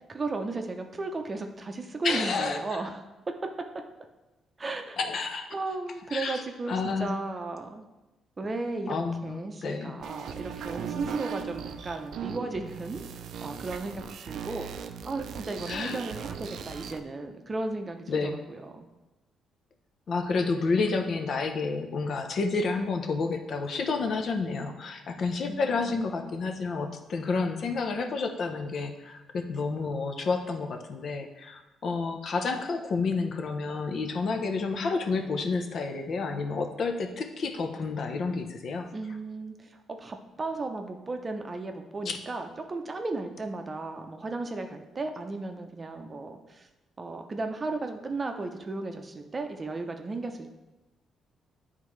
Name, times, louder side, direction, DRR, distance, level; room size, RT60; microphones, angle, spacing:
voice 1, 0.1-3.0 4.6-5.0 5.5-7.8 8.4-9.0 9.2-14.6 15.1-18.9 25.5-25.9 38.9-46.7 47.0-50.5, right 3 dB, 30° right, 5 dB, 0.6 m, -35 dB
voice 2, 2.0-2.8 5.0-5.5 6.1-6.4 6.7-7.1 8.9-9.3 9.6-9.9 15.7-16.0 18.1-18.4 20.1-38.9 42.1-42.2, left 4 dB, 55° left, 5 dB, 0.7 m, -30 dB
sound 1, 10.0-17.0, right 7 dB, 75° right, 0.4 m, -38 dB
8.9 x 3.7 x 3.2 m, 1.0 s
cardioid pair, 90°, 0 cm